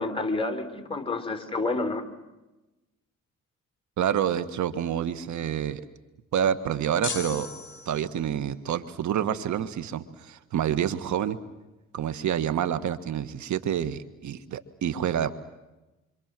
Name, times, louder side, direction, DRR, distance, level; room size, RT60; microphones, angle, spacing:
voice 1, 0.0-2.0, left 3 dB, 20° left, 8 dB, 4.0 m, -29 dB
voice 2, 4.0-5.9 6.3-7.5 7.8-11.4 11.9-15.3, right 9 dB, 70° right, 12 dB, 1.6 m, -28 dB
sound 1, 7.0-8.4, left 5 dB, 40° left, 5.6 m, -36 dB
27.0 x 26.0 x 7.7 m, 1.0 s
cardioid pair, 90°, 30 cm